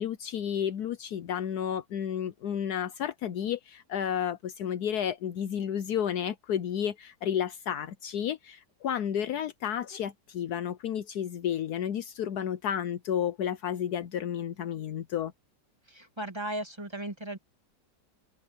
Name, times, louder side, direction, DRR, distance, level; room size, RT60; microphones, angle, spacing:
voice 1, 0.0-15.3, left 9 dB, 70° left, 1.2 m, -32 dB
voice 2, 15.9-17.4, right 1 dB, 15° right, 2.5 m, -36 dB
omnidirectional pair, 1.8 m